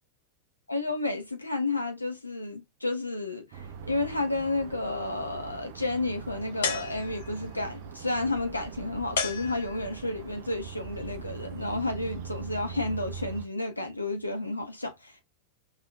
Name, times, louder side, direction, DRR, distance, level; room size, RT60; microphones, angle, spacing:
voice 1, 0.7-15.2, left 2 dB, 85° left, 0.9 m, -31 dB
sound 1, 3.5-13.5, right 7 dB, 50° right, 0.8 m, -42 dB
sound 2, 6.6-7.5 9.2-10.1, left 5 dB, 60° left, 1.0 m, -33 dB
5.6 x 3.2 x 2.3 m
figure-of-eight pair, 90°, 0 cm